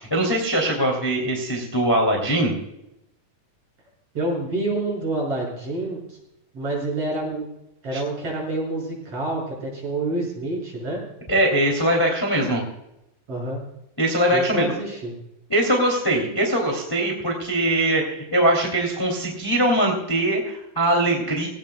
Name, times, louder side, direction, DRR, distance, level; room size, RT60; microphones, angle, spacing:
voice 1, 0.0-2.5 7.9-8.0 11.3-12.6 14.0-14.6 15.5-21.5, right 1 dB, 5° left, 0 dB, 2.2 m, -21 dB
voice 2, 4.1-6.2 6.5-7.5 7.8-11.0 13.3-13.6 14.3-15.1, right 2 dB, 40° right, -2 dB, 7.2 m, -27 dB
20.0 x 17.5 x 2.3 m, 0.84 s
omnidirectional pair, 4.0 m